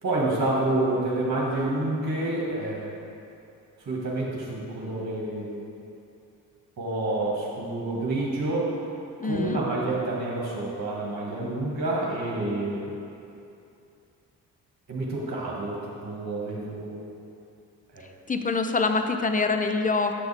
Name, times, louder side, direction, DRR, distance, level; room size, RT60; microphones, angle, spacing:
voice 1, 0.0-3.0 3.8-5.6 6.8-8.7 9.2-12.9 14.9-15.8 16.0-17.0 17.9-18.1, right 2 dB, 40° right, -4 dB, 1.6 m, -28 dB
voice 2, 9.2-9.6 18.3-20.1, left 3 dB, 20° left, 6 dB, 0.6 m, -25 dB
7.9 x 6.1 x 3.4 m, 2.7 s
supercardioid pair, 50°, 43 cm